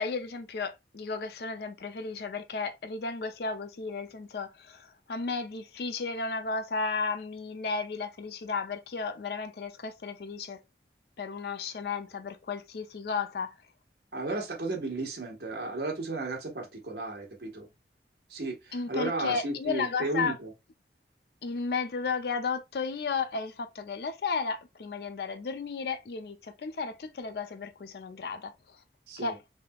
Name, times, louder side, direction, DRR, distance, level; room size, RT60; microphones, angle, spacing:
voice 1, 0.0-10.6 11.2-13.5 18.7-20.3 21.4-28.8 29.2-29.4, left 4 dB, 60° left, 0.4 m, -34 dB
voice 2, 14.1-17.7 18.3-20.5 29.1-29.4, right 2 dB, 70° right, 1.1 m, -34 dB
3.4 x 2.8 x 2.3 m
head